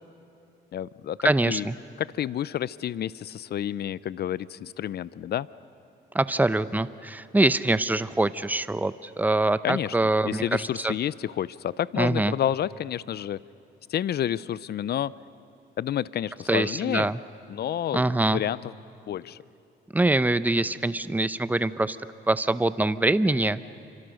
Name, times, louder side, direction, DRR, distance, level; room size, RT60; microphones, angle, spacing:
voice 1, 0.7-1.2 1.5-1.7 2.0-5.5 9.6-9.9 10.2-13.4 13.9-15.1 15.8-17.1 17.5-18.0 18.3-18.7 19.1-19.4, left 10 dB, 55° left, 19 dB, 0.6 m, -29 dB
voice 2, 1.2-1.7 6.1-10.9 12.0-12.3 16.5-17.2 17.9-18.4 19.9-22.0 22.3-23.6, right 2 dB, 10° right, 14 dB, 0.7 m, -24 dB
28.5 x 25.5 x 6.4 m, 2.8 s
cardioid pair, 90°, 20 cm